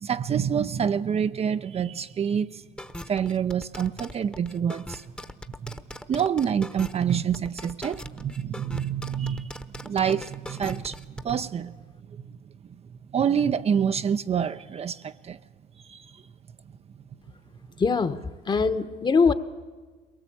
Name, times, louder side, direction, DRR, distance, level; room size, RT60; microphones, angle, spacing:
voice 1, 0.0-2.6 3.1-5.0 5.6-5.8 6.1-11.7 13.1-15.4 15.9-16.1, right 8 dB, 35° right, 0.6 m, -27 dB
sound 1, 2.8-11.3, left 1 dB, 5° left, 1.0 m, -40 dB
voice 2, 17.8-18.2 18.5-19.3, left 5 dB, 25° left, 1.1 m, -22 dB
22.5 x 18.5 x 8.6 m
cardioid pair, 110°, 17 cm